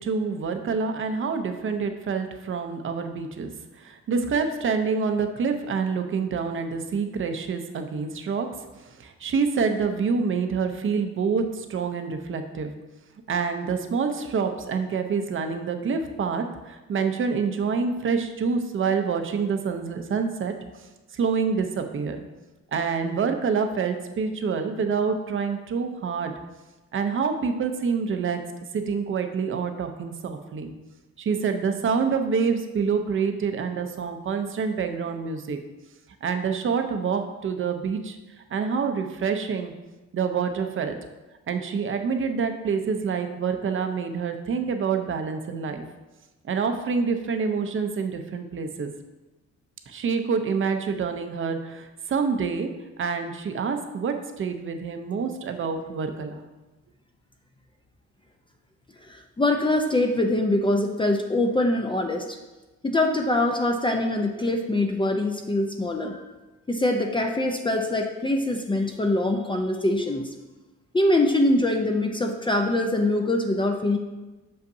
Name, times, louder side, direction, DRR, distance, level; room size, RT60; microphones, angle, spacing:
voice 1, 0.0-8.5 8.8-12.7 13.3-20.5 21.1-22.2 22.7-26.3 26.9-28.4 28.7-30.7 31.2-35.6 36.2-38.2 38.5-39.7 40.1-40.9 41.5-45.8 46.4-48.9 49.9-52.7 53.0-56.5, right 5 dB, 45° right, 6 dB, 0.7 m, -27 dB
voice 2, 59.1-62.2 62.8-66.2 66.7-70.3 70.9-74.0, left 1 dB, 15° left, 3 dB, 0.5 m, -23 dB
6.6 x 5.4 x 2.7 m, 1.1 s
cardioid pair, 90°, 30 cm